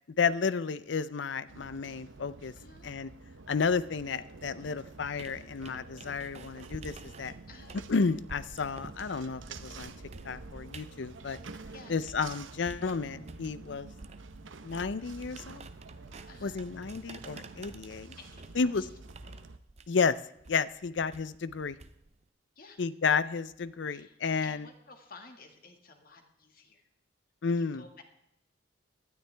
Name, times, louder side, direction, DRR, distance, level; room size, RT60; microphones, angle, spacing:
voice 1, 0.2-2.5 2.8-3.1 3.5-7.3 7.9-9.9 10.2-11.4 11.9-13.9 14.6-15.7 16.4-18.1 18.6-18.9 19.9-20.2 20.5-21.8 22.8-24.7 27.4-27.9, left 5 dB, 65° left, 16 dB, 0.5 m, -31 dB
sound 1, 1.5-19.6, right 3 dB, 80° right, 0.8 m, -49 dB
voice 2, 2.5-3.0 7.5-7.8 11.7-12.0 16.3-16.6 18.2-18.9 19.3-19.4 22.5-22.8 23.9-24.2 24.4-26.8 27.4-28.0, left 3 dB, 45° left, 4 dB, 1.8 m, -53 dB
sound 2, 4.9-12.3 12.6-22.3, right 3 dB, 35° right, 0.6 m, -50 dB
18.5 x 12.5 x 3.4 m, 0.81 s
head